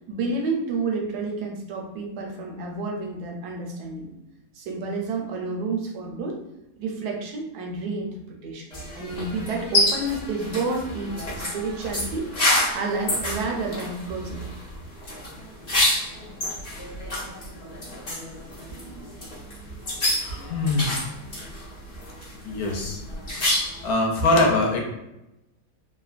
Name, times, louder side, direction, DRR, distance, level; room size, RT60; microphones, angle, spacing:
voice 1, 0.1-4.1 4.5-6.4 6.8-12.3 12.7-14.4, right 3 dB, 80° right, 1 dB, 1.2 m, -30 dB
sound 1, 8.7-23.9, left 1 dB, 40° left, 0.6 m, -28 dB
voice 2, 20.2-21.0 22.4-23.0 23.8-24.8, left 2 dB, 75° left, 0 dB, 1.0 m, -22 dB
3.0 x 2.1 x 2.4 m, 0.91 s
omnidirectional pair, 1.7 m